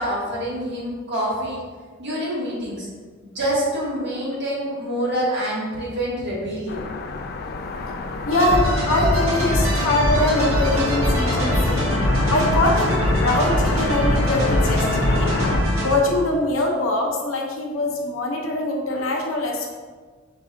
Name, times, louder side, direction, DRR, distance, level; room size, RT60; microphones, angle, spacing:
voice 1, 0.0-1.6 2.0-2.9 3.2-6.9, equal, 55° right, -5 dB, 1.3 m, -26 dB
sound 1, 6.7-15.6, left 3 dB, 50° left, 0.3 m, -27 dB
voice 2, 8.3-15.3 15.8-19.7, left 2 dB, 75° left, 0 dB, 0.7 m, -23 dB
sound 2, 8.3-16.2, equal, 80° right, 0.9 m, -22 dB
4.7 x 2.5 x 3.8 m, 1.5 s
head